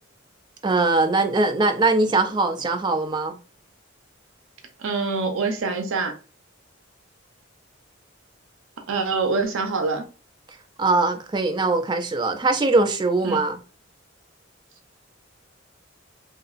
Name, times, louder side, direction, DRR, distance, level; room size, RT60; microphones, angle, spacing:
voice 1, 0.6-3.4 10.8-13.6, right 3 dB, 20° right, 0.3 m, -21 dB
voice 2, 4.8-6.1 8.9-10.0 13.2-13.4, right 4 dB, 75° right, 0.5 m, -25 dB
2.8 x 2.4 x 2.4 m
head